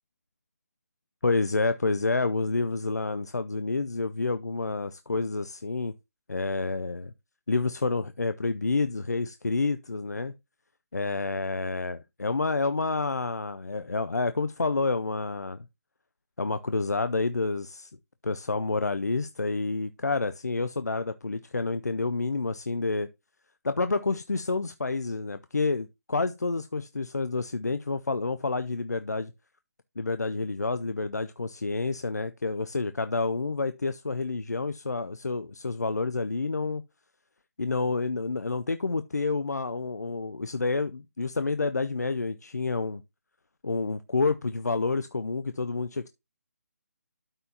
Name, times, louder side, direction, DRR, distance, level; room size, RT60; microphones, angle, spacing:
voice 1, 1.2-5.9 6.3-7.1 7.5-10.3 10.9-15.6 16.4-17.9 18.2-23.1 23.6-29.3 30.0-36.8 37.6-43.0 43.6-46.1, left 3 dB, 90° left, 0.5 m, -29 dB
12.5 x 4.4 x 2.8 m
figure-of-eight pair, 150°, 9 cm